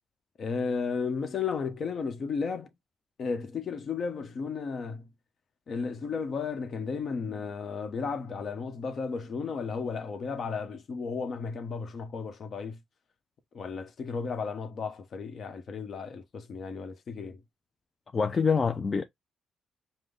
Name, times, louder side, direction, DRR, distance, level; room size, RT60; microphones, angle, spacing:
voice 1, 0.4-2.7 3.2-5.1 5.7-12.8 13.5-17.4, left 5 dB, 55° left, 1.1 m, -34 dB
voice 2, 18.1-19.0, left 5 dB, 35° left, 0.5 m, -25 dB
5.2 x 2.3 x 3.8 m
cardioid pair, 90°, 0 cm